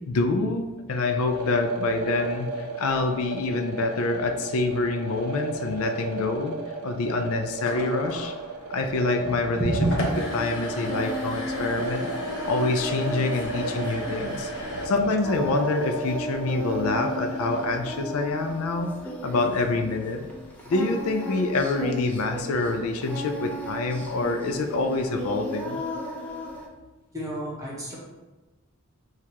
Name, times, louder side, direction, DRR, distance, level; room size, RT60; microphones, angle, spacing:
voice 1, 0.1-8.3 8.7-9.7 10.3-12.1 12.4-14.5 14.8-18.9 19.2-20.3 20.7-25.8, left 3 dB, 75° left, 6 dB, 0.4 m, -26 dB
sound 1, 1.3-17.8, right 3 dB, 75° right, 0.5 m, -34 dB
sound 2, 7.5-14.9, left 1 dB, 60° left, 0.9 m, -37 dB
voice 2, 9.2-9.9 14.8-14.9 27.1-28.0, right 1 dB, 15° right, -5 dB, 0.9 m, -29 dB
Singing, 10.0-26.7, left 1 dB, 5° left, 0.5 m, -35 dB
6.3 x 2.4 x 2.8 m, 1.2 s
head